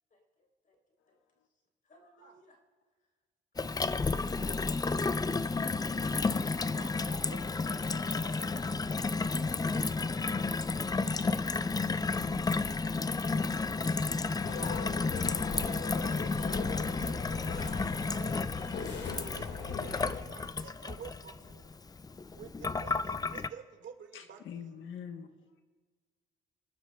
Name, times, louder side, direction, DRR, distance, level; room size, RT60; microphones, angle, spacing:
voice 1, 1.9-2.6, left 1 dB, 45° left, 1 dB, 3.7 m, -62 dB
Gurgling / Water tap faucet / Sink (filling or washing), 3.6-23.5, left 4 dB, 20° left, 0.4 m, -32 dB
voice 2, 6.8-8.9 17.7-18.5 19.0-21.7 22.3-24.7, right 7 dB, 70° right, 4 dB, 1.9 m, -51 dB
sound 1, 14.4-20.2, left 5 dB, 60° left, 2.0 m, -39 dB
voice 3, 24.1-25.3, left 7 dB, 80° left, 6 dB, 1.2 m, -47 dB
27.5 x 12.0 x 2.3 m, 1.5 s
cardioid pair, 90°, 20 cm